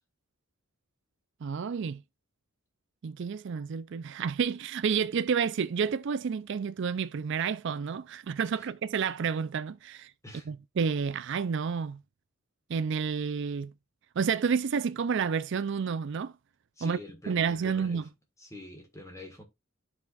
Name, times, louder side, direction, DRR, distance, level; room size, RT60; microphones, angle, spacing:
voice 1, 1.4-2.0 3.0-10.1 10.5-12.0 12.7-13.7 14.2-16.3 16.8-17.0 17.3-18.0, right 6 dB, 55° right, 0.4 m, -30 dB
voice 2, 16.8-18.1 18.4-19.4, left 2 dB, 15° left, 1.5 m, -45 dB
12.5 x 4.3 x 2.4 m
head